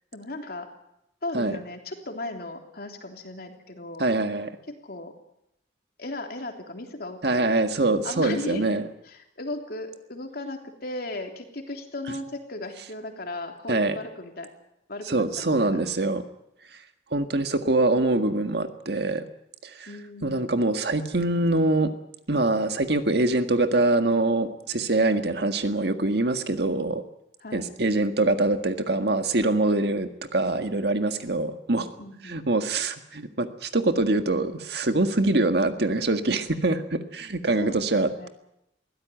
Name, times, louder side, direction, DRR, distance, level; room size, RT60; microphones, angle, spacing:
voice 1, 0.1-0.7 1.2-4.1 4.7-5.1 6.0-7.6 8.0-8.7 9.0-14.5 14.9-15.8 19.9-20.5 27.4-27.7 32.0-32.5 37.6-38.3, left 2 dB, 55° left, 4 dB, 3.3 m, -36 dB
voice 2, 4.0-4.5 7.2-8.9 13.7-14.0 15.1-16.2 17.1-19.2 19.6-19.9 20.2-21.9 22.3-27.0 27.5-31.9 32.3-38.3, right 2 dB, 60° right, 7 dB, 1.8 m, -24 dB
22.0 x 16.5 x 9.4 m, 0.82 s
head